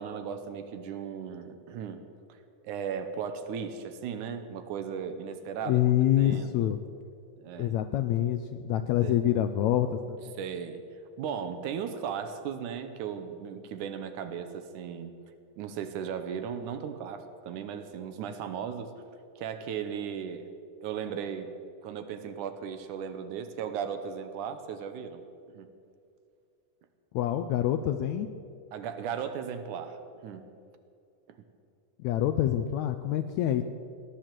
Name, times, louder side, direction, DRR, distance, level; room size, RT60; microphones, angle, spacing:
voice 1, 0.0-2.0 2.3-2.4 2.6-5.8 6.2-6.7 7.4-7.8 9.0-9.2 10.4-10.8 11.2-15.1 15.6-18.9 19.4-20.5 20.8-21.5 21.8-25.2 25.5-25.7 28.7-30.5 31.3-31.4, right 7 dB, 75° right, 9 dB, 2.3 m, -36 dB
voice 2, 5.7-6.8 7.6-10.2 27.1-28.3 32.0-33.6, left 12 dB, 80° left, 9 dB, 1.7 m, -26 dB
17.0 x 10.5 x 7.5 m, 2.4 s
omnidirectional pair, 3.7 m